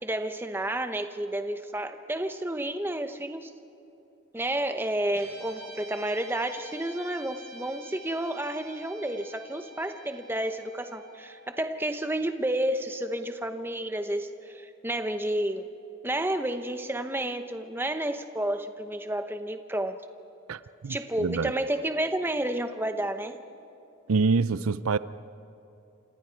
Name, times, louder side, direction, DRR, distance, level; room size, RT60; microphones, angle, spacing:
voice 1, 0.0-3.5 4.3-15.7 16.0-20.0 20.9-23.4, right 1 dB, 10° right, 0.9 m, -31 dB
Guitar, 5.1-13.6, right 1 dB, 30° right, 6.7 m, -48 dB
voice 2, 20.5-21.5 24.1-25.0, right 4 dB, 90° right, 0.5 m, -26 dB
29.0 x 27.0 x 4.6 m
head